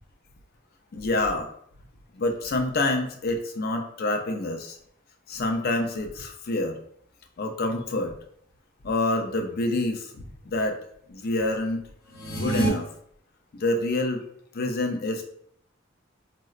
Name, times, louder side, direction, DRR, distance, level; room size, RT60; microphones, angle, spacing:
voice 1, 0.9-1.5 2.1-4.8 5.3-6.8 7.4-8.2 8.8-10.7 11.1-11.9 12.3-12.9 13.5-14.2 14.5-15.2, left 2 dB, 50° left, 4 dB, 0.4 m, -27 dB
sound 1, 12.1-12.7, right 1 dB, 90° left, 0.8 m, -26 dB
3.8 x 2.0 x 2.4 m, 0.67 s
head